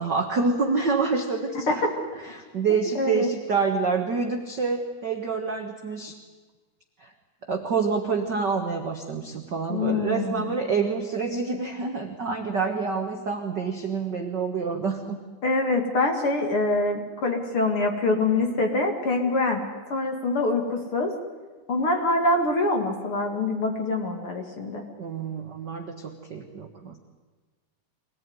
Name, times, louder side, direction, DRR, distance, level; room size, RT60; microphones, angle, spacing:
voice 1, 0.0-1.8 2.2-6.2 7.0-7.1 7.5-15.2 25.0-27.0, right 5 dB, 50° right, 3 dB, 1.3 m, -27 dB
voice 2, 2.9-3.3 9.7-10.5 15.4-19.6 19.9-21.1 21.7-24.8, left 2 dB, 40° left, 4 dB, 2.7 m, -25 dB
24.5 x 18.5 x 9.6 m, 1.3 s
omnidirectional pair, 4.2 m